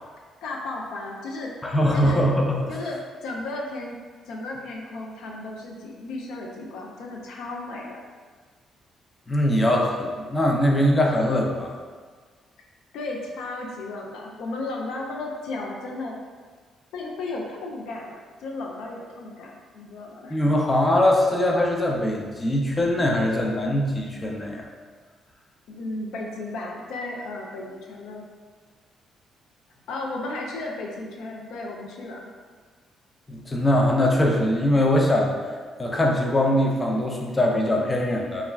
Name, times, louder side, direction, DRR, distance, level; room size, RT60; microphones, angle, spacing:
voice 1, 0.4-1.5 1.9-2.2 2.7-4.0 4.3-8.0 12.9-16.2 16.9-20.4 25.7-28.3 29.9-32.3, left 2 dB, 85° left, -1 dB, 0.4 m, -34 dB
voice 2, 1.6-2.7 9.3-11.7 20.3-24.6 33.3-35.4 35.8-38.4, left 1 dB, 20° left, -1 dB, 0.4 m, -22 dB
2.3 x 2.0 x 3.3 m, 1.5 s
cardioid pair, 90°, 0 cm